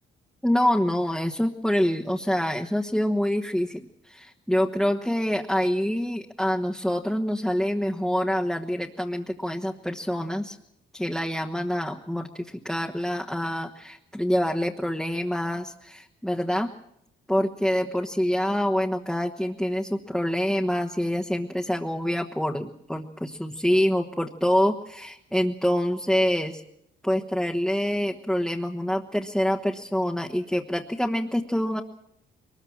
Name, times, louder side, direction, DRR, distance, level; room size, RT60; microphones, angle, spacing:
voice 1, 0.4-10.6 10.9-16.7 17.3-26.6 27.0-31.8, equal, ahead, 1 dB, 1.3 m, -26 dB
22.5 x 20.5 x 7.3 m, 0.78 s
cardioid pair, 90°, 20 cm